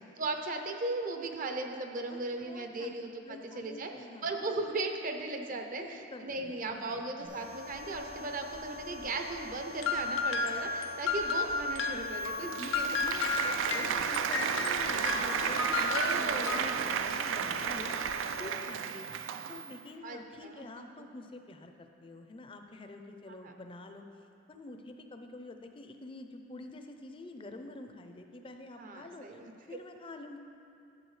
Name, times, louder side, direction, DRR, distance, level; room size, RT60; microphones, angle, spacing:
voice 1, 0.2-3.9 4.2-13.0 13.4-14.3 15.9-16.7 19.1-19.2 20.0-20.9 23.4-23.5 28.8-29.8, right 2 dB, 45° right, 4 dB, 0.6 m, -37 dB
voice 2, 2.1-2.9 3.2-4.3 5.8-7.4 13.0-24.0 24.5-29.4 29.7-30.4, left 2 dB, 30° left, 5 dB, 0.5 m, -47 dB
sound 1, 7.2-18.4, left 2 dB, 70° right, 1.5 m, -45 dB
sound 2, 9.8-16.8, left 4 dB, 80° left, 0.6 m, -33 dB
Applause, 12.2-19.8, right 7 dB, 85° right, 0.3 m, -33 dB
11.0 x 7.2 x 3.2 m, 2.6 s
head